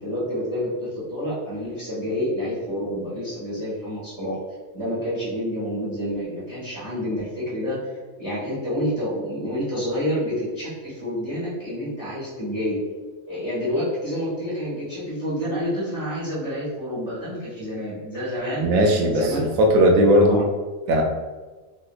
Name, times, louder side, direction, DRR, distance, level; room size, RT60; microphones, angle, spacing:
voice 1, 0.0-4.3 4.7-7.8 8.2-12.8 13.3-19.4 20.2-20.4, equal, 25° left, -9 dB, 1.4 m, -28 dB
voice 2, 18.6-20.4 20.9-21.0, equal, 90° right, 1 dB, 1.0 m, -17 dB
3.1 x 2.8 x 2.4 m, 1.3 s
omnidirectional pair, 1.4 m